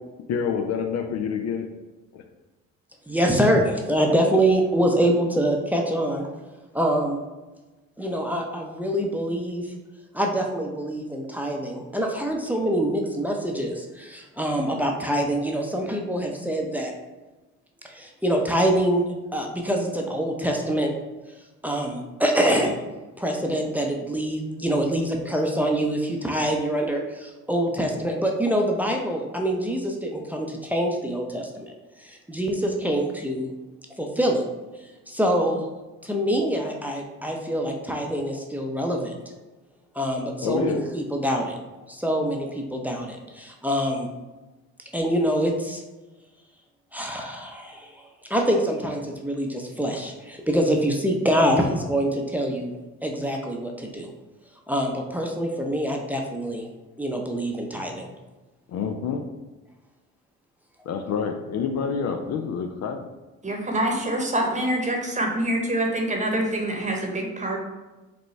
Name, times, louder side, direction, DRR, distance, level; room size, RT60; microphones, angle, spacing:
voice 1, 0.3-1.7 2.1-2.2 40.4-40.8 58.7-59.3 60.9-63.1, left 6 dB, 50° left, 6 dB, 0.5 m, -27 dB
voice 2, 3.1-6.3 6.7-7.2 8.0-9.7 10.1-16.9 17.8-19.0 19.3-20.9 21.6-22.8 23.2-31.7 32.0-33.5 34.0-34.4 35.1-35.6 36.0-39.1 39.9-41.6 41.9-44.1 44.9-45.8 46.9-48.0 48.3-52.7 53.0-54.1 54.7-56.7 57.0-58.1, right 1 dB, 5° right, 1 dB, 0.6 m, -25 dB
voice 3, 63.4-67.6, right 1 dB, 20° right, 1 dB, 1.0 m, -25 dB
5.0 x 2.2 x 3.2 m, 1.1 s
supercardioid pair, 65°, 33 cm